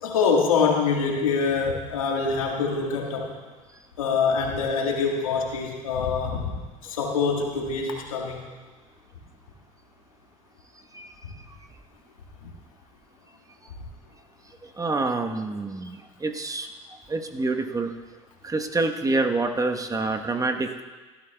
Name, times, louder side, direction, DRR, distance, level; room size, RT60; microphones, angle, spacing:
voice 1, 0.0-3.4 4.0-6.5 6.8-8.4, left 5 dB, 85° left, 1 dB, 1.8 m, -25 dB
voice 2, 14.8-16.7 17.1-17.9 18.4-20.8, right 3 dB, 20° right, 5 dB, 1.1 m, -27 dB
18.0 x 13.0 x 2.3 m, 1.3 s
hypercardioid pair, 75°, 17 cm